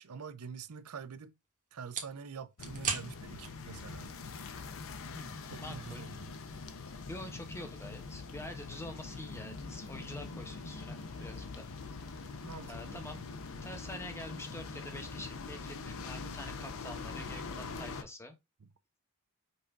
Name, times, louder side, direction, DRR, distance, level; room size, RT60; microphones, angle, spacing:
voice 1, 0.0-1.3 1.7-4.1 5.5-6.3 12.4-13.0 18.6-18.7, right 6 dB, 70° right, 0.6 m, -46 dB
sound 1, 0.7-13.9, right 5 dB, 35° right, 1.2 m, -47 dB
sound 2, 2.6-18.0, left 4 dB, 65° left, 0.6 m, -43 dB
voice 2, 5.1-6.1 6.9-11.7 11.9-12.0 12.7-13.2 13.6-18.3, left 1 dB, 10° left, 1.0 m, -46 dB
5.4 x 2.7 x 3.6 m
head